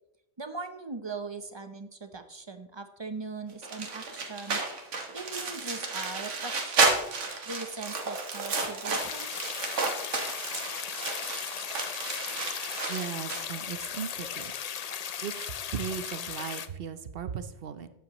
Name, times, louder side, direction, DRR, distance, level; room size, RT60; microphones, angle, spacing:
voice 1, 0.4-4.6 5.1-6.9 7.4-9.3, right 3 dB, 30° right, 8 dB, 0.6 m, -40 dB
sound 1, 3.6-13.4, right 4 dB, 90° right, 1.7 m, -32 dB
sound 2, 8.9-16.7, left 8 dB, 55° left, 0.4 m, -37 dB
voice 2, 12.9-14.5 15.2-17.9, right 7 dB, 60° right, 11 dB, 0.8 m, -37 dB
12.0 x 9.0 x 3.0 m, 0.86 s
omnidirectional pair, 1.2 m